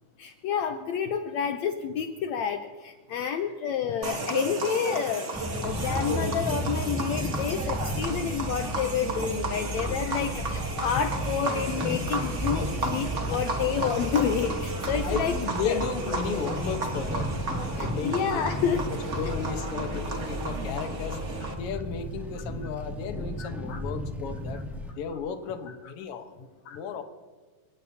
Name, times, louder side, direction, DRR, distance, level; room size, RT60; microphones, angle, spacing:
voice 1, 0.2-5.3 5.6-15.3 15.6-15.8 17.5-18.8 23.4-23.8 26.7-26.8, left 8 dB, 75° left, 7 dB, 1.7 m, -29 dB
sound 1, 4.0-21.5, right 2 dB, 60° right, 0.7 m, -34 dB
sound 2, 5.3-24.9, equal, ahead, 1.8 m, -34 dB
voice 2, 10.1-10.4 13.3-13.4 15.0-17.3 17.7-21.2 21.5-24.6 25.0-27.0, left 6 dB, 60° left, 6 dB, 1.7 m, -34 dB
28.5 x 18.0 x 2.8 m, 1.4 s
omnidirectional pair, 3.8 m